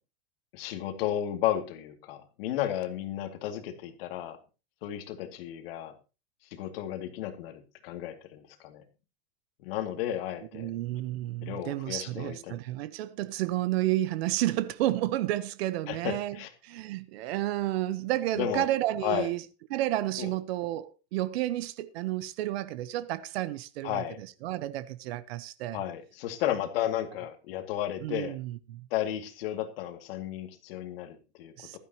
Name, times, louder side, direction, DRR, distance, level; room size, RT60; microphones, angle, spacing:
voice 1, 0.5-4.4 4.8-5.9 6.5-8.8 9.6-10.7 11.4-12.6 15.9-16.5 18.4-18.7 19.0-19.3 20.2-20.3 23.8-24.2 25.7-28.4 28.9-31.8, left 11 dB, 65° left, 2.4 m, -33 dB
voice 2, 10.5-16.4 16.6-19.4 19.7-25.8 28.0-28.9 31.6-31.8, right 15 dB, 75° right, 1.0 m, -31 dB
15.5 x 12.5 x 2.9 m
supercardioid pair, 175°, 31 cm